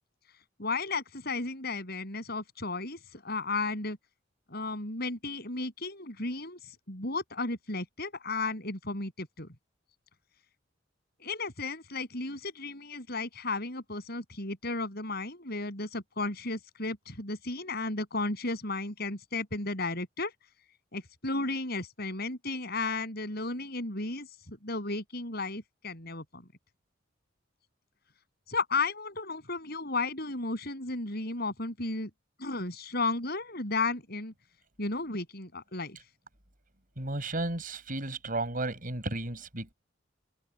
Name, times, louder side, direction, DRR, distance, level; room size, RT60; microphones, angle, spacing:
voice 1, 0.6-4.0 4.5-6.6 6.9-9.5 11.2-20.3 20.9-26.5 28.5-32.1 32.4-34.3 34.8-36.0, left 3 dB, 55° left, 7.9 m, -34 dB
voice 2, 37.0-39.7, right 2 dB, 45° right, 6.9 m, -33 dB
open air
head